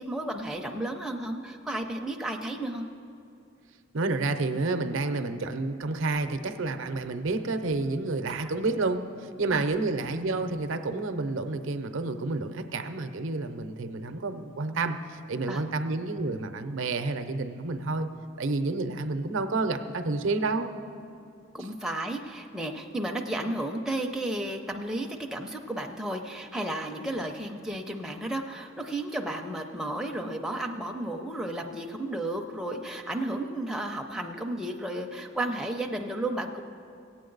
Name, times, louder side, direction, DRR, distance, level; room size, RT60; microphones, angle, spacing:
voice 1, 0.0-2.9 8.4-8.5 9.5-9.6 15.5-15.6 18.9-19.1 21.5-36.6, right 1 dB, 5° right, 1 dB, 0.5 m, -33 dB
voice 2, 3.9-18.1 18.4-20.7, right 3 dB, 70° right, 8 dB, 0.6 m, -29 dB
18.0 x 8.6 x 3.9 m, 2.5 s
head